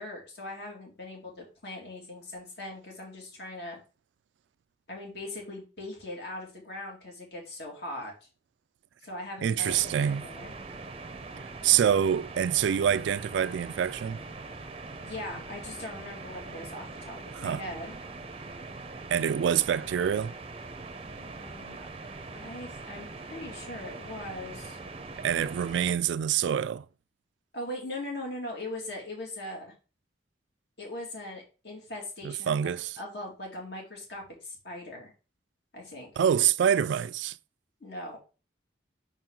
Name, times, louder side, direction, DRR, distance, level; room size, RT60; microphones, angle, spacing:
voice 1, 0.0-3.8 4.9-8.1 9.0-10.5 15.0-18.0 21.1-21.8 22.3-24.8 27.5-29.7 30.8-32.5 33.0-35.1 35.7-36.1 37.8-38.2, left 1 dB, 60° left, 2.4 m, -40 dB
voice 2, 9.4-10.2 11.4-14.2 17.3-17.6 19.1-20.3 25.2-26.9 32.2-32.9 36.2-37.4, right 9 dB, 75° right, 0.3 m, -26 dB
sound 1, 9.6-25.9, right 3 dB, 30° right, 0.6 m, -42 dB
5.9 x 4.5 x 3.7 m
head